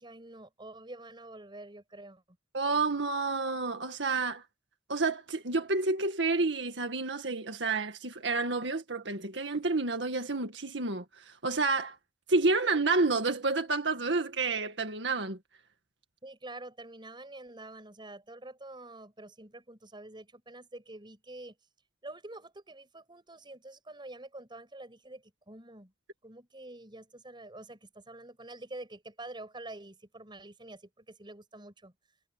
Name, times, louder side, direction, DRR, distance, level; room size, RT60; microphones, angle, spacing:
voice 1, 0.0-2.4 16.2-21.5 22.0-25.9 26.2-31.9, right 2 dB, 25° right, 6.4 m, -47 dB
voice 2, 2.5-4.4 4.9-12.0 12.3-15.4, right 3 dB, 85° right, 1.9 m, -29 dB
head